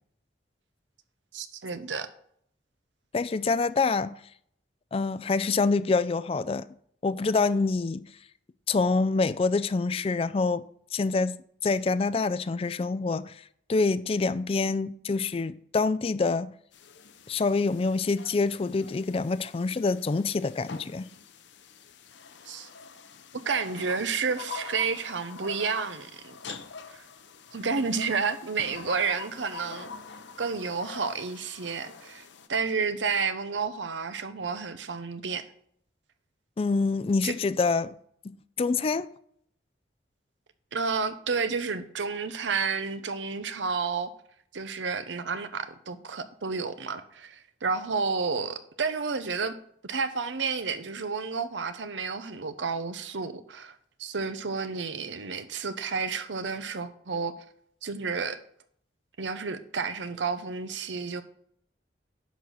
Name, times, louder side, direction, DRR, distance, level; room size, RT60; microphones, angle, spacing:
voice 1, 1.3-2.1 22.5-22.7 23.4-26.5 26.9-27.0 27.5-29.9 30.4-32.2 32.5-35.4 37.2-37.3 40.7-44.1 44.5-49.5 49.8-57.3 57.8-58.4 59.2-61.2, right 5 dB, 85° right, 0.8 m, -31 dB
voice 2, 3.1-4.1 4.9-6.7 7.0-8.0 8.7-10.7 10.9-11.3 11.6-13.4 13.7-16.5 17.3-21.1 36.6-37.9 38.6-39.1, left 4 dB, 30° left, 0.3 m, -26 dB
sound 1, 16.7-32.5, left 5 dB, 80° left, 0.8 m, -45 dB
10.5 x 4.1 x 6.2 m
head